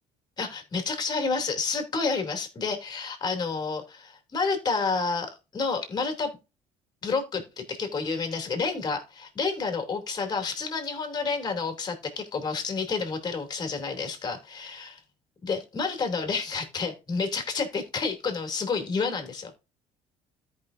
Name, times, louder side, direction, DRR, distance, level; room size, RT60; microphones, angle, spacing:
voice 1, 0.4-6.4 7.0-15.0 15.4-19.5, left 4 dB, 35° left, 5 dB, 2.8 m, -30 dB
13.5 x 5.4 x 2.6 m, 0.28 s
supercardioid pair, 90°, 12 cm